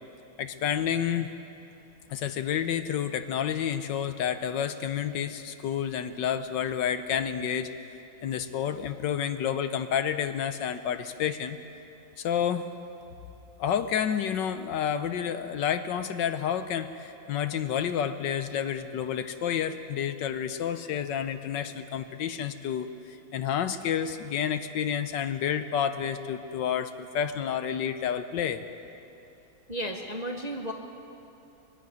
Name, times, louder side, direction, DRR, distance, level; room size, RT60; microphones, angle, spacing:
voice 1, 0.4-1.3 2.1-7.7 8.2-11.6 12.2-12.7 13.6-28.6, left 8 dB, 70° left, 10 dB, 1.3 m, -30 dB
voice 2, 29.7-30.7, equal, 30° right, 2 dB, 0.7 m, -33 dB
23.0 x 12.5 x 9.4 m, 2.9 s
omnidirectional pair, 2.2 m